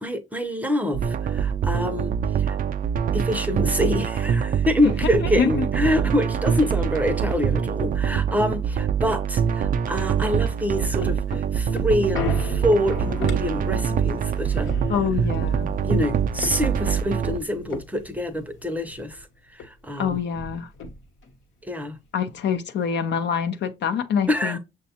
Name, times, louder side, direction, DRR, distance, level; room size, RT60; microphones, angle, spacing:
voice 1, 0.0-2.6 3.1-14.7 15.8-19.3 19.5-20.2 21.7-22.0 24.3-24.6, left 1 dB, 10° right, 0.6 m, -26 dB
sound 1, 0.9-17.4, right 8 dB, 45° right, 0.4 m, -24 dB
sound 2, 10.5-19.2 19.6-19.7 20.0-21.3 21.8-21.9, left 3 dB, 75° left, 1.0 m, -37 dB
voice 2, 14.9-15.7 20.0-20.7 22.1-24.6, left 7 dB, 60° left, 0.6 m, -25 dB
6.1 x 2.3 x 2.8 m
cardioid pair, 90°, 20 cm